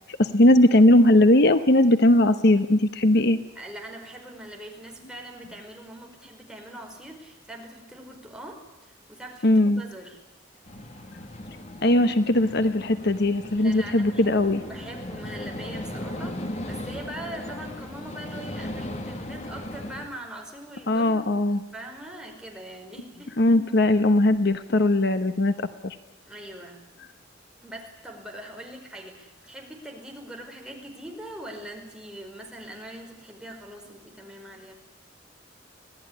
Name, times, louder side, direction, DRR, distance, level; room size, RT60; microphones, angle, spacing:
voice 1, 0.1-3.4 9.4-9.8 11.8-14.6 20.9-21.6 23.4-25.5 25.8-26.0, left 1 dB, 60° left, 10 dB, 1.1 m, -19 dB
voice 2, 3.5-10.2 13.5-21.4 21.7-23.3 26.3-26.8 27.6-34.7, right 1 dB, 5° right, 1 dB, 5.0 m, -42 dB
sound 1, 10.6-20.1, left 1 dB, 35° left, 2.5 m, -37 dB
26.0 x 17.5 x 10.0 m, 0.99 s
head